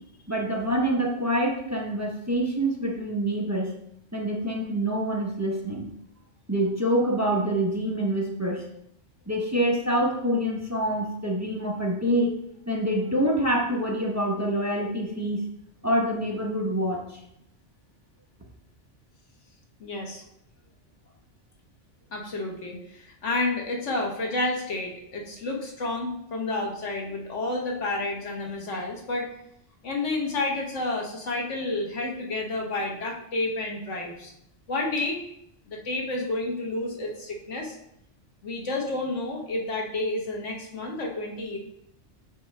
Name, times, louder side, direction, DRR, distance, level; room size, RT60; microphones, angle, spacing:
voice 1, 0.3-3.8 4.1-5.9 6.5-8.6 9.3-12.3 12.7-15.4 15.8-17.2, right 1 dB, 15° right, -2 dB, 0.8 m, -26 dB
voice 2, 19.8-20.2 22.1-29.3 29.8-34.3 34.7-35.2 35.7-37.8 38.4-41.6, left 2 dB, 80° left, 1 dB, 1.5 m, -30 dB
7.2 x 4.5 x 3.3 m, 0.76 s
omnidirectional pair, 1.2 m